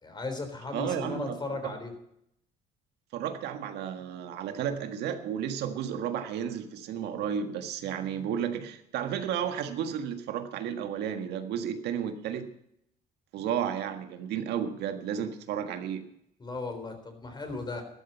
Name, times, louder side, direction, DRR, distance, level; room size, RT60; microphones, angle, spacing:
voice 1, 0.0-1.9 16.4-17.8, left 3 dB, 25° left, 7 dB, 3.8 m, -36 dB
voice 2, 0.7-1.7 3.1-12.5 13.3-16.1, right 8 dB, 80° right, 7 dB, 1.6 m, -33 dB
13.0 x 12.5 x 5.7 m, 0.74 s
cardioid pair, 110°, 17 cm